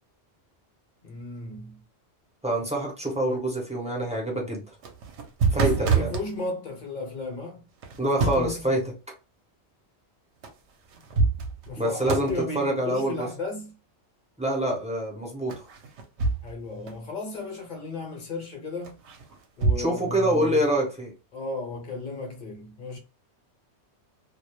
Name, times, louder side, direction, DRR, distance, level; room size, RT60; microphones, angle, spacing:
voice 1, 1.0-1.8 5.5-7.6 8.1-8.7 11.7-13.7 16.4-19.0 19.6-20.6 21.3-23.0, left 3 dB, 45° left, 0.8 m, -35 dB
voice 2, 2.4-4.6 5.5-6.1 8.0-8.8 11.8-13.3 14.4-15.6 19.8-21.1, right 1 dB, 10° right, 0.5 m, -26 dB
sound 1, 4.7-6.3 7.8-8.6 10.4-10.5 10.9-11.8 12.1-12.4 15.5-16.6 16.9-17.0 18.8-19.8, right 4 dB, 75° right, 0.8 m, -26 dB
2.2 x 2.0 x 2.8 m
omnidirectional pair, 1.2 m